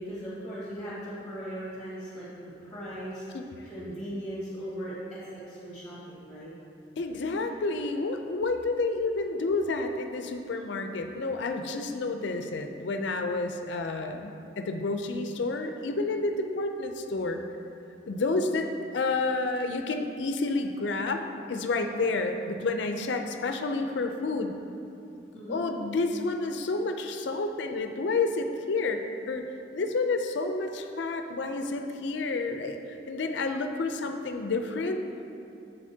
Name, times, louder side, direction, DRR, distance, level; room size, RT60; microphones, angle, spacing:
voice 1, 0.0-3.3 3.6-6.5 25.3-25.6, equal, 5° left, -9 dB, 1.4 m, -38 dB
voice 2, 7.0-17.4 18.1-21.2 21.5-24.6 25.5-29.5 29.7-35.0, left 3 dB, 75° left, 6 dB, 0.5 m, -30 dB
8.5 x 6.9 x 2.7 m, 2.8 s
head